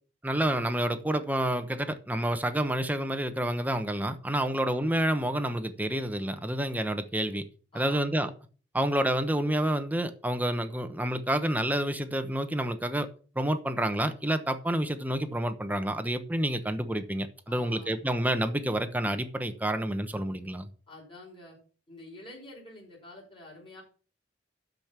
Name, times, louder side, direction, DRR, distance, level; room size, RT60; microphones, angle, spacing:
voice 1, 0.2-7.4 7.7-8.3 8.7-13.1 13.3-20.7, right 1 dB, 10° right, 1.0 m, -29 dB
voice 2, 7.7-8.1 17.5-17.9 20.9-21.6 21.9-23.8, left 2 dB, 30° left, 5.4 m, -48 dB
12.5 x 5.3 x 5.9 m
head